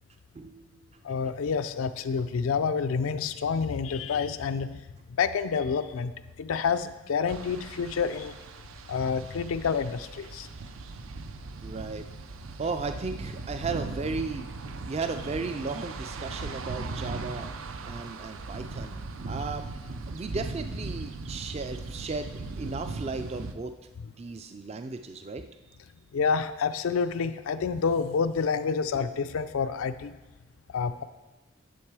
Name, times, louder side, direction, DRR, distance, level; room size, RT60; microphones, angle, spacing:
voice 1, 0.3-0.9 11.6-12.1 12.6-14.6 14.9-17.5 17.8-19.0 19.3-19.7 20.1-23.7 24.2-25.6 28.9-29.1, right 4 dB, 30° right, 8 dB, 0.3 m, -35 dB
voice 2, 1.0-4.8 5.2-6.1 6.4-8.4 8.9-10.5 26.1-30.2 30.7-31.0, left 5 dB, 85° left, 10 dB, 0.4 m, -28 dB
sound 1, 7.3-23.5, right 3 dB, 80° right, 0.6 m, -38 dB
10.0 x 6.6 x 4.7 m, 1.1 s
head